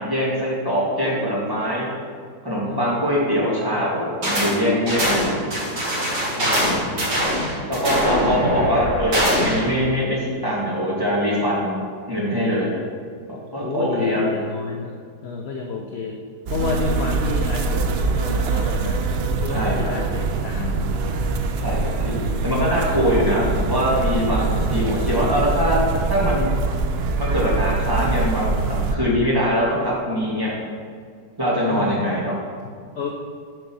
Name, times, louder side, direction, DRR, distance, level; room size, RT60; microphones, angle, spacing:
voice 1, 0.0-1.9 2.4-5.3 7.7-11.8 12.1-12.8 13.3-14.2 19.5-19.9 21.6-21.8 22.0-22.1 22.4-25.8 26.1-26.5 27.2-28.6 28.9-30.5 31.4-32.4, equal, 15° right, -7 dB, 2.1 m, -22 dB
voice 2, 2.6-3.0 6.4-7.2 8.5-8.7 13.6-16.2 16.5-19.0 19.4-20.9 31.7-32.0 32.9-33.1, left 4 dB, 60° left, 1 dB, 0.7 m, -30 dB
sound 1, 4.2-4.6 4.9-9.7, equal, 55° right, 2.0 m, -22 dB
sound 2, 16.5-28.9, right 3 dB, 75° right, 0.5 m, -23 dB
7.6 x 5.4 x 6.1 m, 2.1 s
omnidirectional pair, 1.7 m